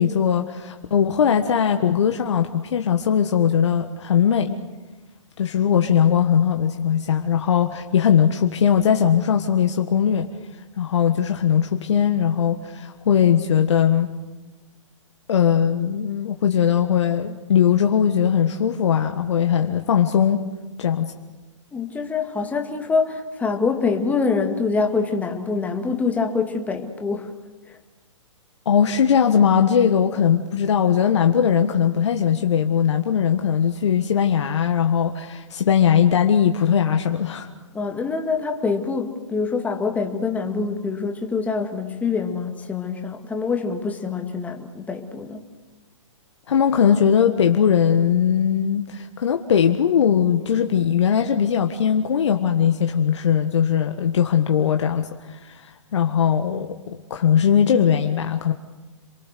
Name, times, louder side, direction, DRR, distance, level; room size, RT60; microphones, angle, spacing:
voice 1, 0.0-4.6 5.4-10.3 10.8-14.1 15.3-20.4 20.8-21.1 28.6-37.5 46.5-58.5, left 8 dB, 65° left, 5 dB, 1.5 m, -20 dB
voice 2, 21.7-27.3 27.7-27.8 37.7-45.5, left 4 dB, 10° left, 3 dB, 2.1 m, -25 dB
28.0 x 23.0 x 6.8 m, 1.2 s
hypercardioid pair, 135°, 16 cm